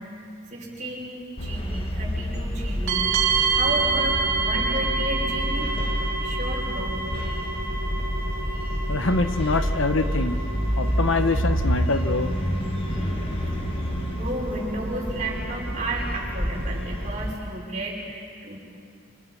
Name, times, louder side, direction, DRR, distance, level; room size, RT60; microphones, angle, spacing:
voice 1, 0.0-3.1 3.5-5.7 6.2-6.9 14.1-18.6, right 1 dB, 35° right, -3 dB, 5.9 m, -32 dB
sound 1, 1.4-17.4, equal, 25° left, 1.9 m, -28 dB
sound 2, 2.9-17.2, right 4 dB, 80° right, 3.2 m, -30 dB
voice 2, 8.9-10.4 10.8-12.4, left 3 dB, 85° left, 9 dB, 1.2 m, -24 dB
29.0 x 28.5 x 5.7 m, 2.3 s
head